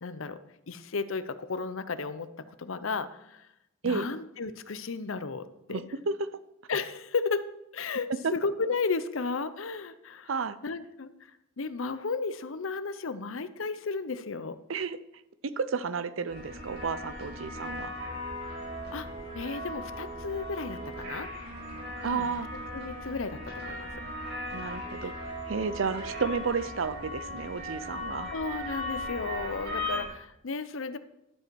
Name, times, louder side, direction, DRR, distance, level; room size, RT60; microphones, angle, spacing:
voice 1, 0.0-0.4 0.7-3.5 3.8-5.8 6.7-10.3 10.6-11.1 11.6-14.6 18.9-19.1 19.3-21.3 22.0-22.3 22.7-23.9 25.0-25.1 28.3-31.0, left 4 dB, 80° left, 13 dB, 0.7 m, -34 dB
voice 2, 5.7-6.3 10.3-10.6 14.7-15.0 15.6-17.9 22.0-22.5 24.5-28.3, right 5 dB, 75° right, 14 dB, 0.6 m, -32 dB
sound 1, 16.3-30.1, left 1 dB, 60° right, 4.9 m, -38 dB
12.0 x 7.9 x 4.6 m, 0.84 s
head